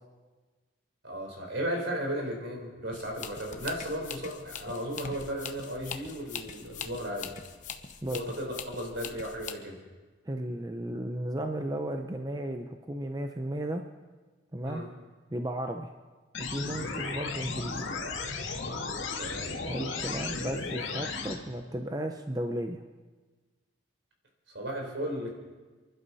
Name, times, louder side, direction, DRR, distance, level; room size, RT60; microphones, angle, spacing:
voice 1, 1.0-7.3 8.1-9.8 14.6-14.9 19.2-19.5 24.5-25.3, equal, 75° right, 1 dB, 4.2 m, -35 dB
sound 1, 2.9-9.5, left 7 dB, 40° left, 0.9 m, -42 dB
voice 2, 10.3-13.8 14.5-14.8 15.3-15.9 16.4-17.8 19.7-22.8, right 1 dB, 20° right, 5 dB, 0.7 m, -34 dB
sound 2, 16.3-21.3, left 4 dB, 90° left, 2.2 m, -35 dB
29.0 x 11.5 x 4.2 m, 1.3 s
head